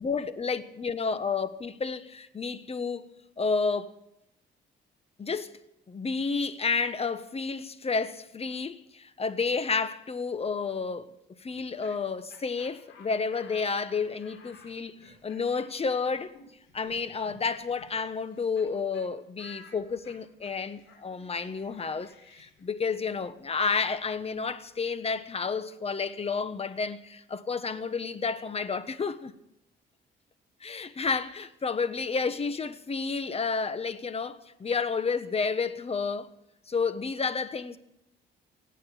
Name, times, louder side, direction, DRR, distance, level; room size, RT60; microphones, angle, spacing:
voice 1, 0.0-3.1 3.4-4.0 5.2-5.6 5.9-11.1 11.4-16.3 16.7-29.3 30.6-36.3 36.7-37.8, left 5 dB, 30° left, 1.2 m, -31 dB
Laughter, 11.5-18.7 18.9-19.1 19.4-25.1, left 5 dB, 90° left, 5.0 m, -55 dB
17.0 x 9.1 x 9.0 m
cardioid pair, 90°, 20 cm